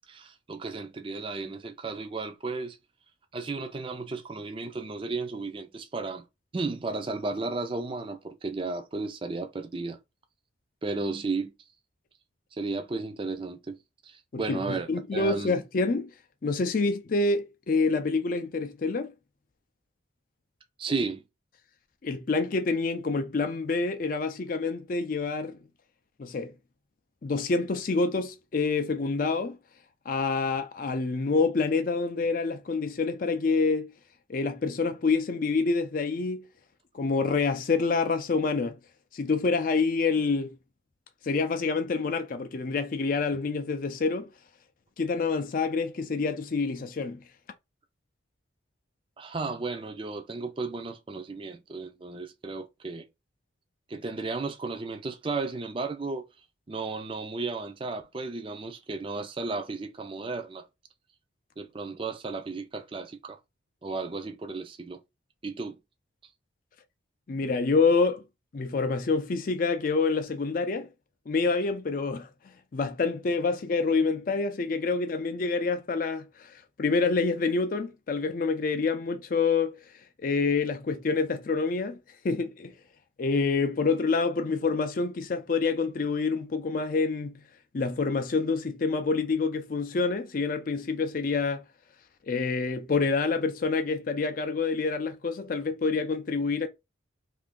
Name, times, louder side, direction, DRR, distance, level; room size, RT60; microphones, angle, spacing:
voice 1, 0.1-2.8 3.3-6.2 6.5-10.0 10.8-11.5 12.5-13.8 14.0-15.6 20.8-21.2 49.2-53.1 53.9-56.2 56.7-60.7 61.6-63.4 63.8-65.0 65.4-65.8, right 3 dB, 25° right, 0.4 m, -34 dB
voice 2, 14.3-16.1 16.4-19.1 22.0-25.6 26.2-26.5 27.2-29.6 30.1-33.9 34.3-36.4 36.9-38.8 39.1-40.5 41.2-44.3 45.0-47.2 67.3-68.2 68.5-70.9 71.3-72.3 72.7-79.8 80.2-82.0 82.2-82.7 83.2-87.4 87.7-91.6 92.3-96.7, left 4 dB, 45° left, 0.4 m, -27 dB
2.7 x 2.6 x 3.6 m
head